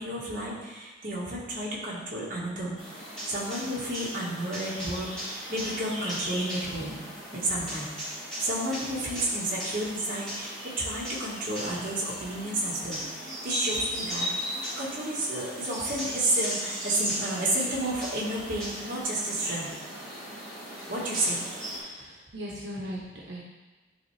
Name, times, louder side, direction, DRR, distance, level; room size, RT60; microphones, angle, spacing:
voice 1, 0.0-2.7 3.3-7.0 7.3-7.9 8.4-19.7 20.9-21.4, right 1 dB, 45° right, -6 dB, 1.6 m, -31 dB
sound 1, 2.8-21.8, equal, 5° left, 2.1 m, -37 dB
voice 2, 21.7-23.4, equal, 85° right, -4 dB, 1.0 m, -39 dB
10.0 x 3.4 x 3.3 m, 1.2 s
head